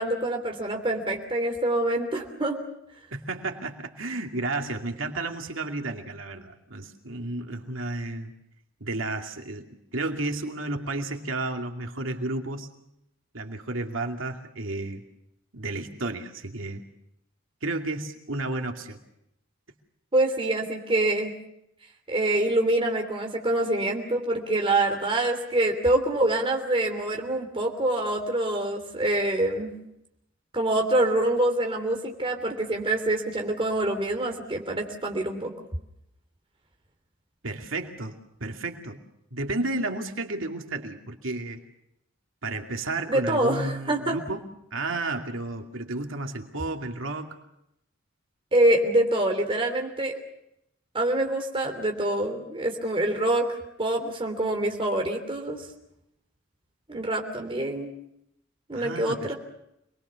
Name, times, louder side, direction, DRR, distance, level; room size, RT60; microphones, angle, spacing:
voice 1, 0.0-2.6 20.1-21.3 22.1-29.7 30.5-35.5 43.1-44.2 48.5-50.2 50.9-55.6 56.9-57.9 58.7-59.4, right 1 dB, 25° right, 2 dB, 3.2 m, -25 dB
voice 2, 3.1-8.3 8.8-12.7 13.3-15.0 15.5-16.8 17.6-19.0 37.4-39.0 39.3-41.6 42.4-44.4 44.7-47.4 58.7-59.3, right 2 dB, 85° right, 3 dB, 2.5 m, -32 dB
27.0 x 21.0 x 7.0 m, 0.82 s
head